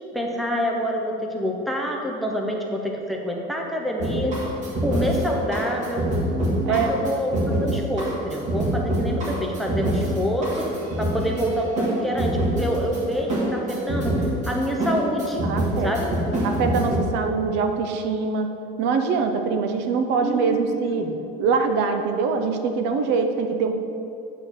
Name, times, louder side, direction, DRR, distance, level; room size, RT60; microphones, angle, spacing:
voice 1, 0.1-4.3 4.8-6.1 6.6-10.6 11.0-14.1 14.5-15.4 15.8-16.1 20.2-21.2, equal, ahead, 0 dB, 0.6 m, -27 dB
sound 1, 4.0-17.0, right 1 dB, 35° right, 1.6 m, -26 dB
voice 2, 6.6-7.1 15.4-15.9 16.4-18.5 18.8-21.1 21.4-23.7, right 5 dB, 60° right, 6 dB, 0.6 m, -23 dB
9.0 x 3.8 x 6.4 m, 2.7 s
cardioid pair, 170°, 21 cm